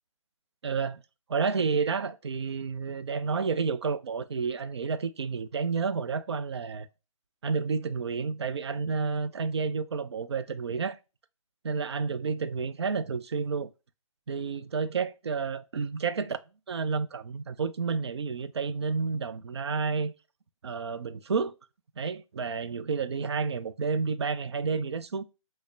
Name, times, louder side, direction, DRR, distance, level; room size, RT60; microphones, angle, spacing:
voice 1, 0.6-1.0 1.3-6.9 7.4-11.0 11.6-13.7 14.3-16.4 16.7-20.1 20.6-21.5 22.0-25.2, right 5 dB, 50° right, 0.4 m, -30 dB
5.1 x 2.0 x 2.5 m
figure-of-eight pair, 150°, 18 cm